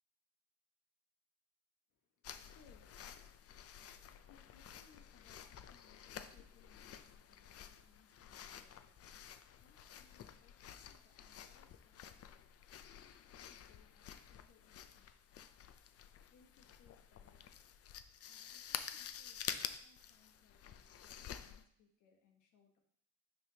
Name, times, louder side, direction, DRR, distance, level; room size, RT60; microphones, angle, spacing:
voice 1, 1.9-12.4 13.2-15.1 16.3-17.5 18.3-22.8, left 6 dB, 90° left, 3 dB, 1.2 m, -70 dB
sound 1, 2.2-21.6, left 9 dB, 55° left, 0.5 m, -50 dB
10.0 x 3.4 x 2.8 m, 0.64 s
cardioid pair, 90°, 30 cm